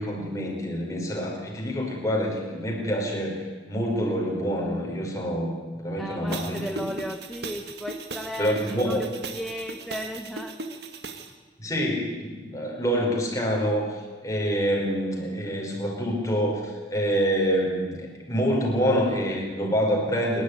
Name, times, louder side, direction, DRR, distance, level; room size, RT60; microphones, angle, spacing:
voice 1, 0.0-3.4 3.7-5.5 5.8-6.9 8.4-9.1 11.6-18.0 18.3-20.4, equal, 20° left, -1 dB, 5.2 m, -26 dB
voice 2, 6.0-10.6, equal, ahead, 5 dB, 1.0 m, -35 dB
sound 1, 6.3-11.3, right 3 dB, 70° right, 2.0 m, -38 dB
27.5 x 11.5 x 9.9 m, 1.4 s
head